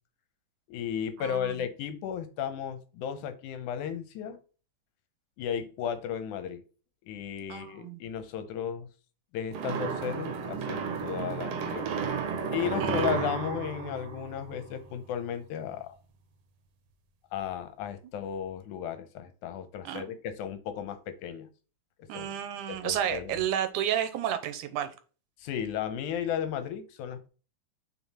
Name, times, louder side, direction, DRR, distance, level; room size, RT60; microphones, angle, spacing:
voice 1, 0.7-4.4 5.4-6.6 7.1-8.9 9.3-11.9 12.5-15.9 17.3-21.5 22.1-22.3 22.7-23.4 25.4-27.3, left 8 dB, 85° left, 10 dB, 2.3 m, -34 dB
voice 2, 1.2-1.6 7.5-8.0 12.8-13.1 19.8-20.2 22.1-24.9, right 10 dB, 85° right, 8 dB, 2.4 m, -32 dB
sound 1, 9.5-14.9, right 6 dB, 65° right, 1.8 m, -33 dB
6.4 x 3.7 x 4.1 m, 0.36 s
omnidirectional pair, 3.5 m